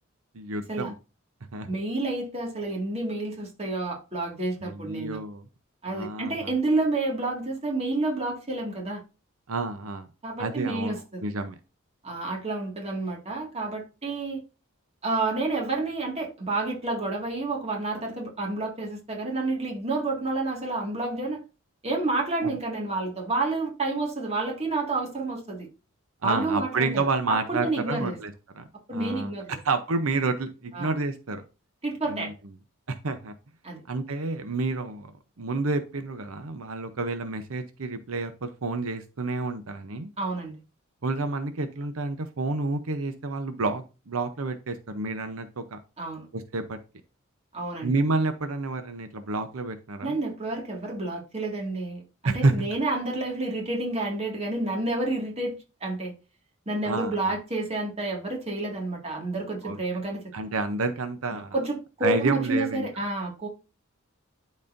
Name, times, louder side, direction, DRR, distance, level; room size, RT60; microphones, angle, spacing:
voice 1, 0.3-1.0 1.5-1.7 4.6-5.4 5.9-6.5 9.5-10.1 10.4-11.5 22.4-22.5 26.2-29.3 29.6-31.4 32.1-32.3 33.0-33.3 33.9-35.1 35.4-40.1 41.0-45.8 46.3-46.8 47.8-50.2 52.2-52.7 56.8-57.3 59.6-59.8 60.3-61.6 62.0-62.9, right 3 dB, 85° right, 0.8 m, -29 dB
voice 2, 1.7-5.2 5.8-9.0 10.2-11.3 12.0-14.4 15.0-21.4 21.8-25.7 26.2-27.0 27.3-28.2 28.9-29.6 30.7-31.0 31.8-32.3 33.6-33.8 40.2-40.5 46.0-46.3 47.5-47.9 50.0-56.1 56.7-60.2 61.3-63.5, right 2 dB, 30° right, 2.1 m, -29 dB
12.0 x 4.2 x 2.6 m
head